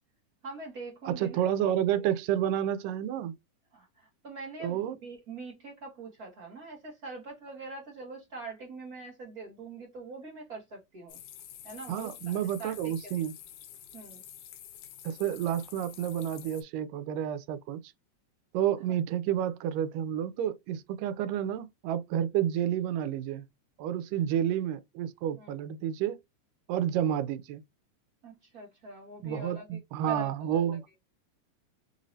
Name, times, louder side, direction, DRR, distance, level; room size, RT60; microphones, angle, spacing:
voice 1, 0.4-1.4 2.0-2.1 3.7-11.2 11.6-13.1 13.9-14.2 25.3-25.5 28.2-30.8, right 3 dB, 65° right, 0.8 m, -43 dB
voice 2, 1.1-3.4 4.6-5.0 11.9-13.3 15.0-17.8 18.5-23.5 23.8-26.2 26.7-27.6 29.2-30.8, right 10 dB, 90° right, 2.3 m, -30 dB
sound 1, 11.1-16.6, left 10 dB, 85° left, 2.5 m, -48 dB
5.6 x 2.7 x 3.0 m
omnidirectional pair, 3.7 m